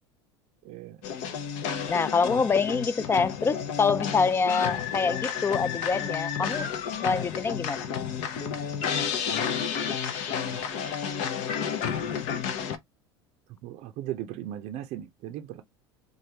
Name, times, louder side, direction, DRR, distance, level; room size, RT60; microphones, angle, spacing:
voice 1, 0.6-1.0 10.5-10.7 13.6-15.6, right 12 dB, 55° right, 0.5 m, -37 dB
sound 1, 1.0-12.8, left 7 dB, 60° left, 0.7 m, -31 dB
voice 2, 1.9-6.7 7.0-7.8, left 5 dB, 15° left, 0.4 m, -25 dB
3.1 x 2.5 x 2.8 m
hypercardioid pair, 75°, 14 cm